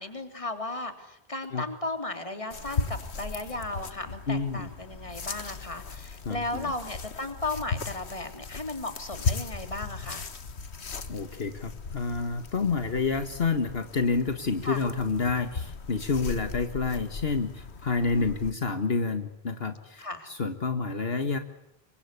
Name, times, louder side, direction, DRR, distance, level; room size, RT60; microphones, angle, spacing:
voice 1, 0.0-10.3 14.6-14.8 18.1-18.3 20.0-20.3, left 2 dB, 30° left, 7 dB, 3.3 m, -35 dB
sound 1, 2.5-18.5, left 4 dB, 90° left, 1.8 m, -37 dB
voice 2, 4.3-4.7 6.3-6.7 11.1-21.4, left 4 dB, 70° left, 8 dB, 1.8 m, -29 dB
28.0 x 24.0 x 8.4 m, 0.83 s
omnidirectional pair, 1.1 m